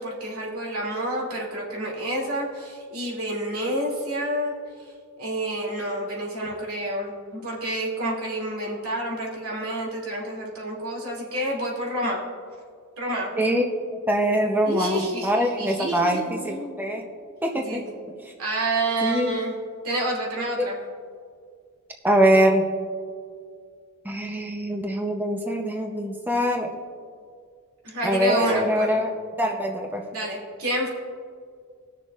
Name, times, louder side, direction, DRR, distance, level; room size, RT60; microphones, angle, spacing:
voice 1, 0.0-4.5 5.2-12.2 13.0-13.3 14.7-16.8 17.6-17.8 18.4-19.6 19.8-20.8 27.8-28.9 30.1-30.9, right 1 dB, 75° right, -3 dB, 2.4 m, -29 dB
voice 2, 14.1-17.0 17.4-17.8 18.2-18.3 19.0-19.4 20.6-20.7 22.0-22.6 24.0-26.7 28.0-29.1 29.4-30.0, equal, 10° right, 1 dB, 0.6 m, -23 dB
20.0 x 6.7 x 2.4 m, 2.1 s
head